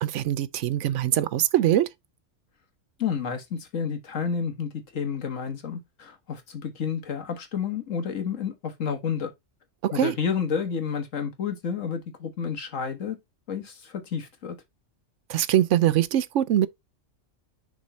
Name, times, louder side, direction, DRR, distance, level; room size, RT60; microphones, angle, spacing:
voice 1, 0.0-1.9 9.8-10.1 15.3-16.7, right 12 dB, 75° right, 0.9 m, -23 dB
voice 2, 3.0-9.3 9.9-13.2 13.5-14.6, left 6 dB, 85° left, 1.7 m, -30 dB
6.3 x 3.9 x 4.1 m
omnidirectional pair, 1.3 m